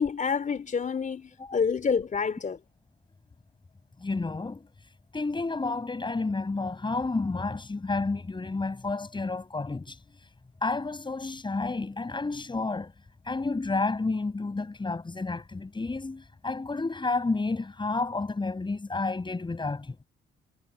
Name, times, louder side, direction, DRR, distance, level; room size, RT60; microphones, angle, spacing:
voice 1, 0.0-2.6, left 6 dB, 40° left, 3.9 m, -28 dB
voice 2, 4.0-4.7 5.1-10.0 10.6-12.9 13.2-20.0, left 3 dB, 25° left, 6.4 m, -30 dB
cardioid pair, 90°, 20 cm